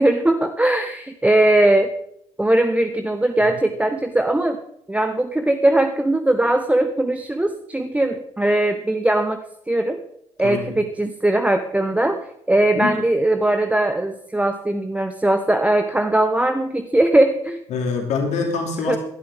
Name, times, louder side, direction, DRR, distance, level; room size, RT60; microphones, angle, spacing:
voice 1, 0.0-1.9 2.4-4.6 4.9-9.4 9.7-10.0 10.4-12.2 12.5-17.6 18.9-19.0, right 1 dB, 10° right, 7 dB, 1.0 m, -19 dB
voice 2, 17.7-19.0, left 5 dB, 50° left, 2 dB, 2.8 m, -24 dB
18.5 x 12.0 x 3.6 m, 0.75 s
figure-of-eight pair, 50°, 15 cm